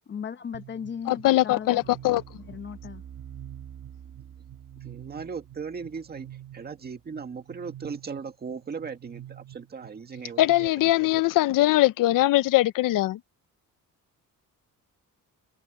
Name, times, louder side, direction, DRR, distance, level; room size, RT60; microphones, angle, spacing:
voice 1, 0.1-1.8 2.4-3.0, left 7 dB, 35° left, 0.8 m, -36 dB
sound 1, 0.5-10.7, right 11 dB, 45° right, 1.4 m, -46 dB
voice 2, 1.1-2.2 10.4-13.2, left 16 dB, 70° left, 0.6 m, -21 dB
voice 3, 4.8-6.3 6.5-11.1, right 5 dB, 30° right, 1.9 m, -38 dB
cardioid pair, 165°, 33 cm